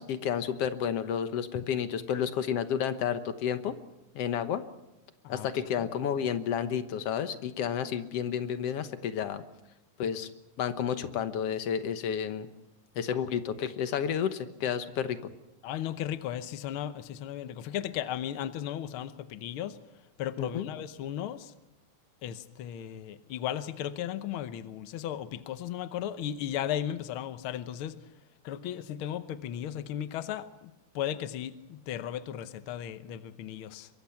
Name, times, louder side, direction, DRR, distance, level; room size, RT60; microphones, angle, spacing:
voice 1, 0.0-3.7 4.2-4.6 5.3-9.4 10.0-10.3 10.6-12.5 13.0-15.3 20.4-20.7, left 8 dB, 60° left, 10 dB, 1.8 m, -31 dB
voice 2, 15.6-19.8 20.2-21.5 22.2-27.9 28.4-33.9, left 11 dB, 85° left, 12 dB, 1.1 m, -36 dB
24.5 x 23.0 x 5.8 m, 0.97 s
omnidirectional pair, 3.7 m